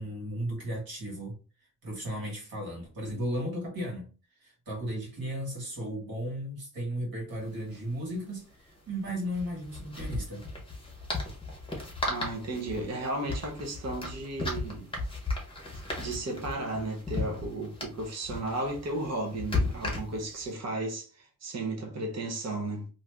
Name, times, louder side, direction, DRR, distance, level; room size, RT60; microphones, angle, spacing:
voice 1, 0.0-1.4 1.8-4.1 4.4-10.4, equal, 80° right, 1.6 m, -35 dB
sound 1, 7.3-7.4 7.6-7.8 9.2-20.5, left 2 dB, 15° left, 0.8 m, -35 dB
voice 2, 12.1-14.9 16.0-22.9, right 2 dB, 45° right, 0.8 m, -34 dB
2.6 x 2.5 x 3.3 m
wide cardioid pair, 180°, 35 cm